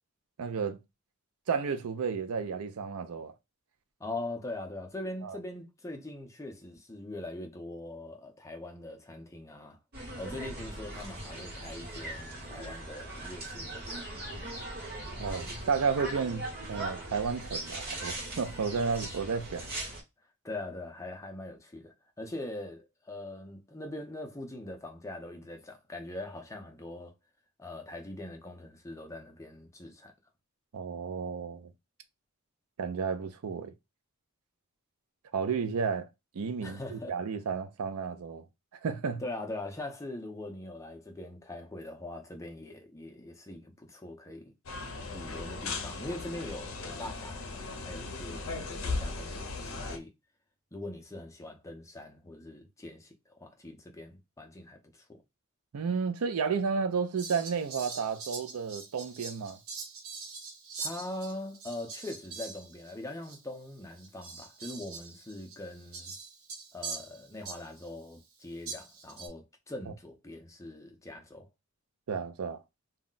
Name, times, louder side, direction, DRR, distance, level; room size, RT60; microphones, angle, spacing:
voice 1, 0.4-0.8 1.5-3.3 5.2-5.4 15.2-19.7 30.7-31.7 32.8-33.7 35.3-36.1 36.3-38.4 38.8-39.2 55.7-59.6 72.1-72.6, right 5 dB, 90° right, 0.5 m, -32 dB
voice 2, 4.0-9.8 10.2-14.1 14.4-14.6 20.4-27.1 27.6-30.1 36.6-37.2 39.2-44.5 45.0-50.1 50.7-55.2 60.8-66.1 66.7-71.5, left 1 dB, 15° left, 0.5 m, -42 dB
sound 1, 9.9-20.0, right 1 dB, 45° right, 1.1 m, -40 dB
sound 2, 44.7-50.0, left 3 dB, 65° left, 0.6 m, -37 dB
Fowl, 57.2-63.0 63.2-63.4 64.0-67.9 68.7-69.3, right 4 dB, 70° right, 0.9 m, -43 dB
2.3 x 2.1 x 3.7 m
head